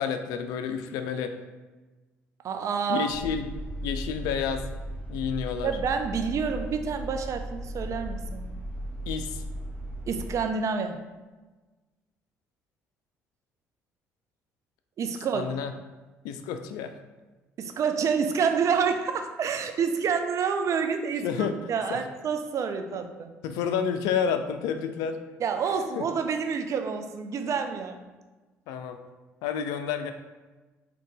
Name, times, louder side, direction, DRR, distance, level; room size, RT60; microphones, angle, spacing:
voice 1, 0.0-1.3 2.9-3.5 3.8-4.6 5.1-5.7 9.1-9.4 15.3-15.7 16.2-16.9 21.2-21.5 21.9-22.0 23.4-25.2 26.0-26.1 28.7-29.0 29.4-30.1, left 7 dB, 75° left, 8 dB, 0.3 m, -29 dB
voice 2, 2.4-3.2 5.6-8.5 10.1-11.0 15.0-15.5 17.6-23.3 25.4-28.0, right 6 dB, 50° right, 7 dB, 0.5 m, -28 dB
sound 1, 3.1-10.4, right 1 dB, 25° left, 1.4 m, -36 dB
3.8 x 2.8 x 3.6 m, 1.2 s
hypercardioid pair, 55°, 7 cm